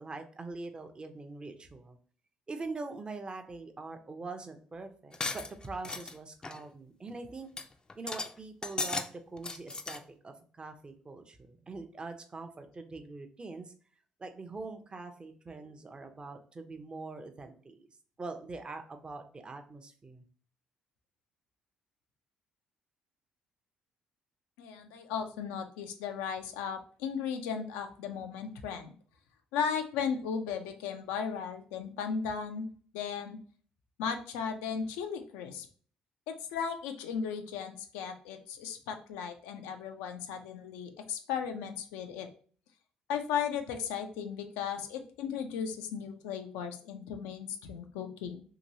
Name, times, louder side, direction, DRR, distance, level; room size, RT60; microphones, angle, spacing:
voice 1, 0.0-2.0 2.5-7.5 7.9-13.7 14.2-17.9 18.2-20.2, right 3 dB, 30° right, 6 dB, 0.6 m, -43 dB
sound 1, 5.1-6.1 6.4-6.6 7.1-7.2 7.6-7.7 7.9-8.3 8.6-9.1 9.4-10.0, left 3 dB, 25° left, 0.4 m, -36 dB
voice 2, 24.6-28.9 29.5-32.7 32.9-33.4 34.0-35.7 36.3-42.3 43.1-48.4, left 7 dB, 85° left, 6 dB, 0.4 m, -36 dB
2.9 x 2.9 x 2.7 m, 0.43 s
hypercardioid pair, 60°, 3 cm